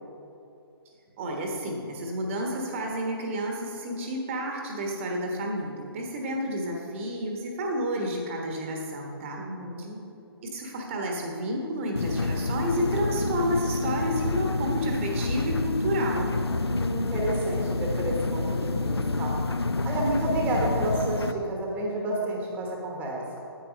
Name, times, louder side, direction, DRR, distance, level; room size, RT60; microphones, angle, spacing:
voice 1, 1.2-9.4 10.5-16.3, equal, 30° right, 0 dB, 1.2 m, -30 dB
voice 2, 9.4-10.0 16.7-19.4 19.8-23.4, right 1 dB, 10° right, -2 dB, 1.2 m, -30 dB
sound 1, 12.0-21.3, left 3 dB, 75° left, 0.5 m, -28 dB
9.2 x 8.6 x 5.2 m, 2.8 s
figure-of-eight pair, 135°, 13 cm